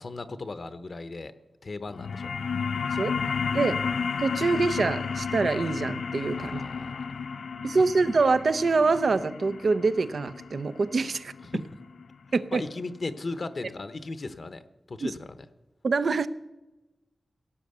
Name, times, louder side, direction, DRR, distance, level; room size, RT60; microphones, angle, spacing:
voice 1, 0.0-1.3 1.6-2.3 3.5-3.6 6.3-7.5 11.4-11.7 12.5-14.6 14.9-15.5, left 3 dB, 60° left, 11 dB, 0.9 m, -37 dB
sound 1, 1.9-13.0, left 5 dB, 90° left, 0.4 m, -32 dB
voice 2, 3.5-3.9 4.2-6.6 7.6-11.3 12.3-12.6 15.0-15.1 15.8-16.3, right 4 dB, 75° right, 13 dB, 0.6 m, -25 dB
17.0 x 8.4 x 6.7 m, 1.1 s
wide cardioid pair, 65°, 0 cm